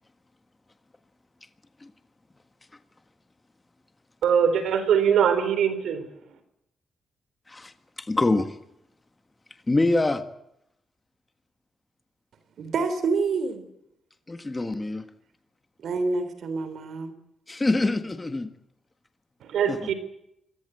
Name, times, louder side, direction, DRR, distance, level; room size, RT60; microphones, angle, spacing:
voice 1, 4.2-6.0 19.5-19.9, right 7 dB, 90° right, 11 dB, 4.4 m, -22 dB
voice 2, 8.0-8.5 9.7-10.2 14.3-15.0 17.5-18.5 19.7-19.8, left 2 dB, 15° left, 9 dB, 1.5 m, -25 dB
voice 3, 12.6-13.6 15.8-17.1, right 4 dB, 60° right, 11 dB, 3.4 m, -27 dB
26.0 x 18.0 x 7.9 m, 0.79 s
wide cardioid pair, 160°, 0 cm